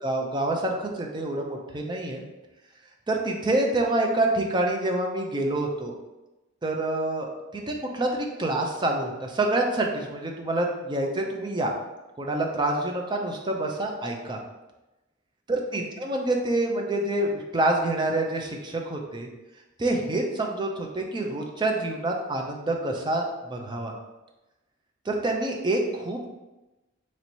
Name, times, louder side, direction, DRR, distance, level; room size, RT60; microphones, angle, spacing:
voice 1, 0.0-2.2 3.1-5.9 6.6-11.7 12.2-14.4 15.5-19.3 19.8-23.9 25.1-26.3, right 2 dB, 20° right, 1 dB, 0.5 m, -27 dB
3.1 x 2.8 x 4.4 m, 1.0 s
head